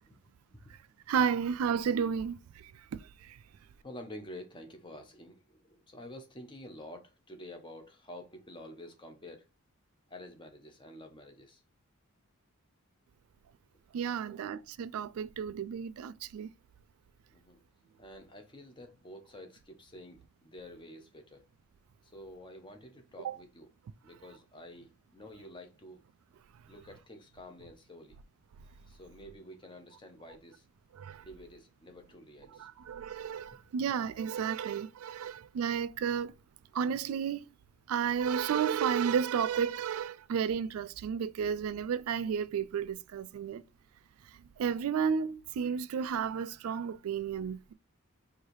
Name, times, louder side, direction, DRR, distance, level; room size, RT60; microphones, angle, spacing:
voice 1, 1.1-2.7 3.2-3.4 13.9-16.5 23.2-23.4 31.0-31.2 32.6-36.3 36.7-37.5 37.9-43.6 44.6-47.7, right 7 dB, 75° right, 0.3 m, -32 dB
voice 2, 3.8-9.5 10.1-11.6 14.2-14.4 17.3-21.5 22.0-23.7 24.0-26.0 26.7-28.2 28.7-30.7 31.2-32.7, left 1 dB, 20° left, 0.8 m, -49 dB
4.7 x 2.7 x 3.0 m
head